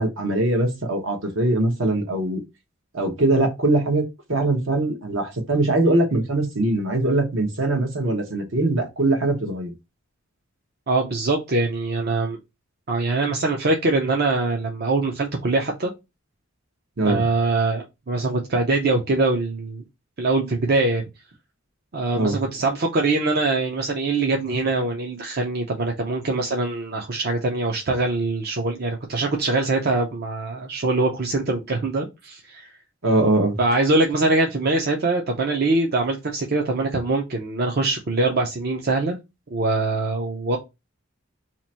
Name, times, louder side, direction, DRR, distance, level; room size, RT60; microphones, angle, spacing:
voice 1, 0.0-2.4 2.9-4.0 4.3-9.7 17.0-17.2 22.1-22.4 33.0-33.6, right 2 dB, 70° right, 1.1 m, -22 dB
voice 2, 10.9-12.4 12.9-15.9 17.0-19.8 20.2-21.0 21.9-32.7 33.6-39.2 39.5-40.6, right 2 dB, 50° right, 0.6 m, -23 dB
2.9 x 2.5 x 4.2 m
head